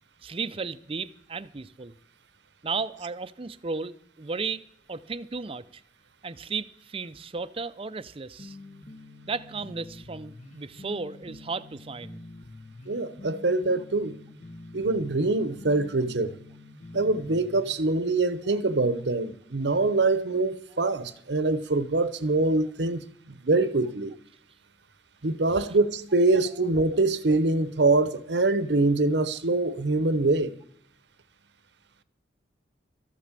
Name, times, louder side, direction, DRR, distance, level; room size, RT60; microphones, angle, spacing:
voice 1, 0.2-1.9 2.6-4.6 4.9-5.8 6.2-8.6 9.2-12.2, right 4 dB, 30° right, 0.5 m, -34 dB
sound 1, 8.4-18.0, left 2 dB, 45° left, 1.0 m, -47 dB
voice 2, 12.9-14.2 14.7-16.3 16.9-24.1 25.2-30.5, right 2 dB, 80° right, 1.0 m, -24 dB
14.0 x 8.4 x 7.5 m
head